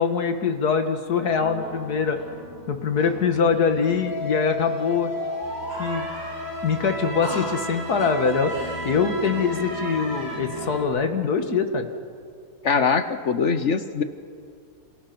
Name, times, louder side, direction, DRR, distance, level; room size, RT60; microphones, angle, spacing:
voice 1, 0.0-2.2 2.7-5.1 5.8-6.1 6.6-8.5 8.8-11.9, left 5 dB, 90° left, 7 dB, 2.2 m, -23 dB
sound 1, 1.3-10.8, equal, 25° right, 6.9 m, -33 dB
voice 2, 12.6-14.0, left 5 dB, 55° left, 10 dB, 1.2 m, -22 dB
29.0 x 27.0 x 6.1 m, 2.2 s
omnidirectional pair, 1.6 m